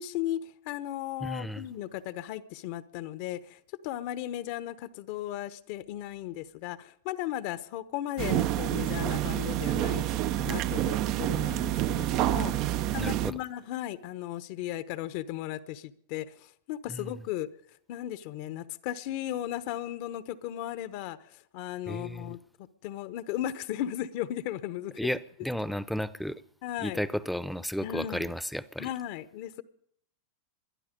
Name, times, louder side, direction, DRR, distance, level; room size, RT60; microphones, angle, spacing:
voice 1, 0.0-10.1 10.4-12.5 12.9-17.5 17.9-22.4 22.8-25.0 26.6-27.0 27.8-28.3 28.8-29.6, left 12 dB, 55° left, 1.0 m, -36 dB
voice 2, 1.2-1.7 13.0-13.4 16.9-17.2 21.9-22.4 25.0-26.4 26.8-28.9, equal, ahead, 0.8 m, -33 dB
sound 1, 8.2-13.3, right 14 dB, 45° right, 0.6 m, -28 dB
21.5 x 12.0 x 5.3 m
hypercardioid pair, 100°, 0 cm